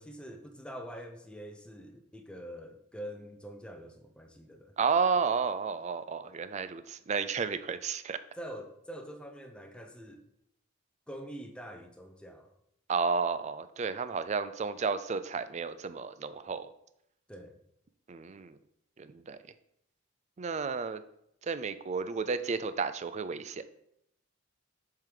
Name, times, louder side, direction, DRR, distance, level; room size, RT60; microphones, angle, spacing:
voice 1, 0.0-4.7 8.3-10.2 11.1-12.5 17.3-17.6, equal, 5° left, 4 dB, 0.7 m, -45 dB
voice 2, 4.8-8.2 12.9-16.7 18.1-18.5 19.0-19.4 20.4-21.0 21.4-23.6, right 5 dB, 35° right, 12 dB, 0.4 m, -32 dB
7.4 x 3.8 x 4.9 m, 0.77 s
head